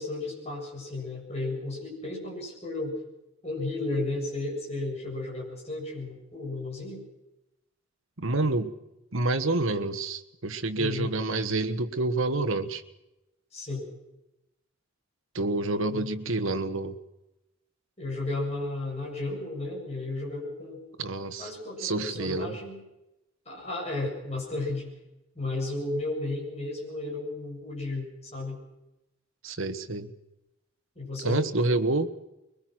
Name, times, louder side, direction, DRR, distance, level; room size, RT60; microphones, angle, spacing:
voice 1, 0.0-3.0 3.4-7.0 10.8-11.1 13.5-13.9 15.9-16.1 18.0-20.8 21.4-22.8 23.5-24.9 25.3-28.6 31.0-31.4, left 2 dB, 30° left, -2 dB, 7.5 m, -33 dB
voice 2, 8.2-8.7 9.1-12.8 15.3-17.0 21.0-21.5 21.8-22.6 29.4-30.1 31.2-32.1, right 2 dB, 70° right, 8 dB, 1.4 m, -28 dB
22.5 x 21.0 x 6.1 m, 0.92 s
head